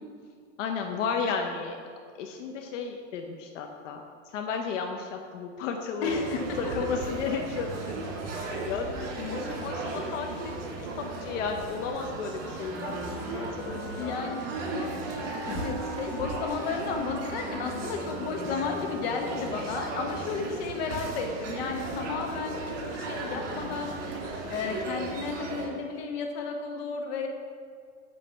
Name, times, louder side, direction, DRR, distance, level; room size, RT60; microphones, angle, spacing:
voice 1, 0.6-1.8 2.1-6.2 6.6-7.9 8.2-14.3 14.7-15.1 15.5-15.6, left 5 dB, 85° left, 3 dB, 0.8 m, -34 dB
voice 2, 6.0-6.7 8.3-8.7 9.2-9.5 14.0-14.5 15.5-22.6 22.9-23.9 24.5-27.3, left 4 dB, 55° left, 3 dB, 1.2 m, -33 dB
sound 1, 6.0-25.7, right 3 dB, 85° right, 2.2 m, -36 dB
Wind instrument woodwind instrument, 12.1-20.0, right 2 dB, ahead, 0.6 m, -42 dB
9.6 x 3.2 x 6.8 m, 2.1 s
supercardioid pair, 175°, 36 cm